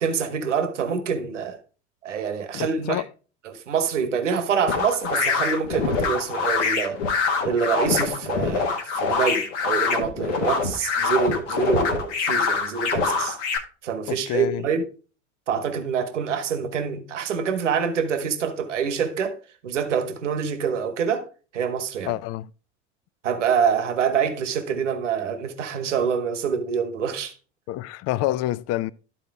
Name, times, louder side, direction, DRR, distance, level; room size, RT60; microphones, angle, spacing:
voice 1, 0.0-1.6 2.0-3.0 3.4-7.0 7.4-13.4 13.8-14.8 15.5-19.4 19.6-21.2 21.5-22.1 23.2-27.3, right 6 dB, 85° right, 1.0 m, -26 dB
voice 2, 2.5-3.1 14.1-14.6 22.1-22.5 27.7-28.9, left 15 dB, 45° left, 0.5 m, -27 dB
sound 1, 4.7-13.6, left 5 dB, 75° left, 1.5 m, -24 dB
12.0 x 4.3 x 3.4 m
hypercardioid pair, 80°, 35 cm